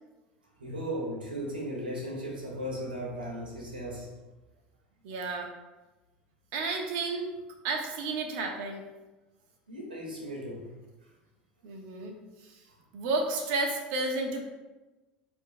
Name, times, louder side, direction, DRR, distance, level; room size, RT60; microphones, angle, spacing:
voice 1, 0.6-4.1 9.7-10.6, equal, 90° right, -2 dB, 1.8 m, -36 dB
voice 2, 5.0-5.5 6.5-7.3 7.6-8.8 11.6-12.1 12.4-12.6 12.9-14.4, right 3 dB, 65° right, 3 dB, 1.2 m, -31 dB
9.7 x 4.6 x 2.2 m, 1.1 s
hypercardioid pair, 75°, 5 cm